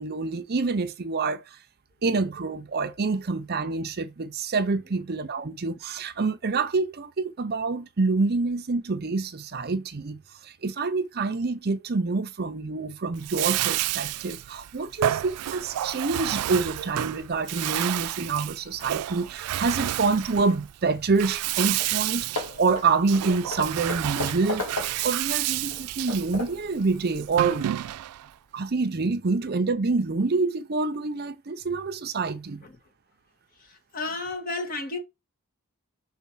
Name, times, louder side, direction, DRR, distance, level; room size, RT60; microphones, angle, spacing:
voice 1, 0.0-1.4 2.0-22.3 22.6-24.7 25.0-27.7 28.5-32.6, right 4 dB, 45° right, 0.6 m, -27 dB
Bathtub (filling or washing), 13.1-28.3, right 13 dB, 85° right, 0.3 m, -30 dB
Hammer / Wood, 21.4-21.5 21.8-22.0 22.4-25.2 25.7-26.7, left 2 dB, 75° left, 2.2 m, -35 dB
voice 2, 33.6-35.0, left 3 dB, 40° left, 1.6 m, -33 dB
5.8 x 3.9 x 5.5 m
head